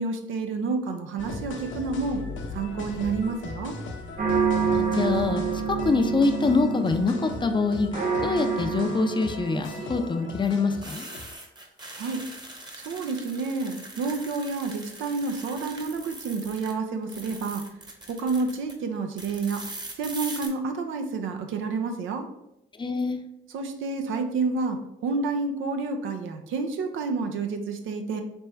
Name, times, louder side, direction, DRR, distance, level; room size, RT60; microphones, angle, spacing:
voice 1, 0.0-2.2 2.5-3.8 12.0-12.3 12.8-17.7 18.1-19.7 20.0-22.3 23.5-28.2, right 4 dB, 80° right, 5 dB, 0.6 m, -29 dB
sound 1, 1.2-11.3, left 3 dB, 70° left, 0.8 m, -38 dB
sound 2, 4.2-10.3, right 6 dB, 40° right, 1.2 m, -28 dB
voice 2, 4.6-5.4 5.8-7.9 8.2-11.1 22.8-23.2, left 4 dB, 25° left, 6 dB, 0.5 m, -25 dB
sound 3, 7.1-7.6 9.5-16.7 17.0-18.7 19.2-20.5, right 2 dB, 20° right, 1.0 m, -42 dB
3.5 x 3.0 x 4.4 m, 0.84 s
cardioid pair, 90°, 20 cm